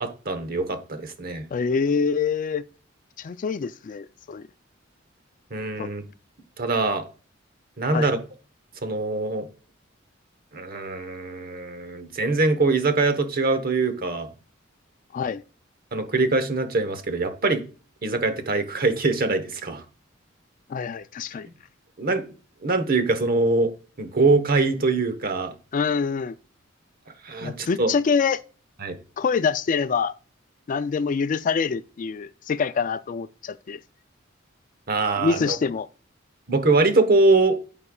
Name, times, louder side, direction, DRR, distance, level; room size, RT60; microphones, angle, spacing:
voice 1, 0.0-1.5 5.5-6.0 6.6-7.0 7.8-8.2 8.8-9.5 10.5-14.3 15.9-17.6 18.0-19.8 22.0-22.2 22.6-23.7 24.0-25.5 27.2-27.9 28.8-29.0 34.9-35.6 36.5-37.6, right 3 dB, 50° right, 1.1 m, -23 dB
voice 2, 1.5-2.6 3.2-4.5 5.8-5.9 7.9-8.1 15.1-15.4 20.7-21.5 25.7-26.3 27.4-28.4 29.2-30.1 30.7-33.8 35.2-35.9, left 5 dB, 40° left, 0.3 m, -25 dB
14.5 x 5.4 x 2.3 m
head